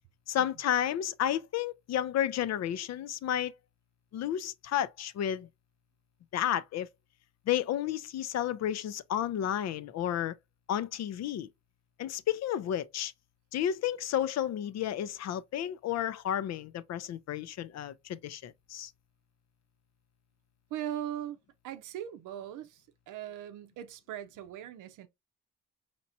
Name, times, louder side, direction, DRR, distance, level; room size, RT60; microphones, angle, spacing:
voice 1, 0.3-3.5 4.1-5.5 6.3-6.9 7.5-10.3 10.7-11.5 12.0-13.1 13.5-18.9, left 10 dB, 60° left, 0.5 m, -32 dB
voice 2, 20.7-21.4 21.6-25.1, right 11 dB, 85° right, 0.6 m, -40 dB
4.2 x 2.9 x 2.6 m
cardioid pair, 90°, 30 cm